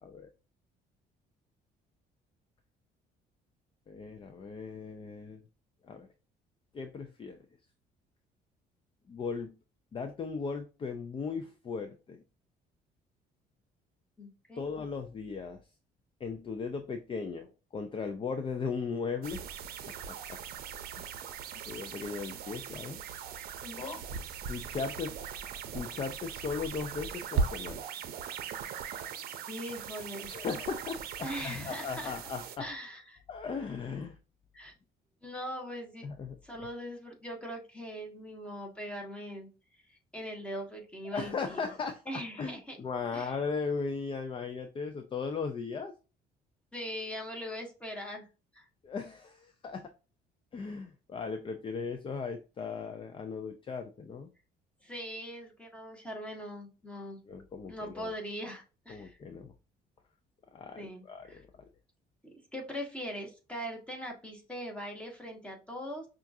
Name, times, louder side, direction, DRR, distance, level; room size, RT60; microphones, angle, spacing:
voice 1, 3.9-5.4 5.8-6.1 6.7-7.4 9.1-9.5 9.9-12.2 14.6-15.6 16.2-17.5 17.7-19.4 19.9-20.4 21.0-21.1 21.5-23.0 23.8-24.0 24.5-25.1 25.7-27.8 30.3-32.7 33.3-34.2 36.0-36.4 41.1-45.9 48.8-49.9 50.5-54.3 57.3-58.1 58.9-59.5 60.5-61.7, left 5 dB, 30° left, 7 dB, 0.5 m, -37 dB
voice 2, 14.2-14.7 23.6-24.0 29.5-30.3 31.2-32.2 32.6-33.2 34.5-34.7 35.2-36.1 36.4-39.5 40.1-41.7 42.1-42.8 43.1-43.4 46.7-48.3 48.5-48.6 54.8-57.2 57.7-59.2 60.8-61.4 62.5-66.1, equal, 5° left, 0 dB, 1.4 m, -41 dB
sound 1, 19.2-32.6, right 6 dB, 65° right, 0.6 m, -39 dB
5.6 x 2.5 x 2.7 m, 0.32 s
cardioid pair, 110°, 17 cm